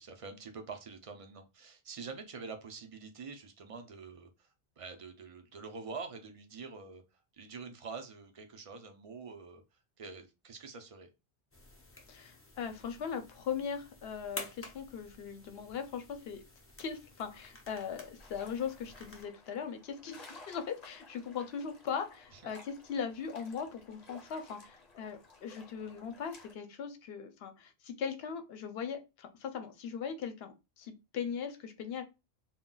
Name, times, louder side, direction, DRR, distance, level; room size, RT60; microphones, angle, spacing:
voice 1, 0.0-4.5 4.8-7.0 7.3-9.6 10.0-11.1 22.3-22.4, right 4 dB, 50° right, 5 dB, 0.4 m, -46 dB
sound 1, 11.5-19.2, left 2 dB, 25° left, 0.3 m, -50 dB
voice 2, 12.1-16.4 16.8-20.2 20.5-32.0, left 7 dB, 75° left, 8 dB, 0.8 m, -39 dB
sound 2, 18.2-26.5, left 3 dB, 45° left, 0.8 m, -56 dB
2.3 x 2.1 x 3.7 m, 0.26 s
omnidirectional pair, 1.1 m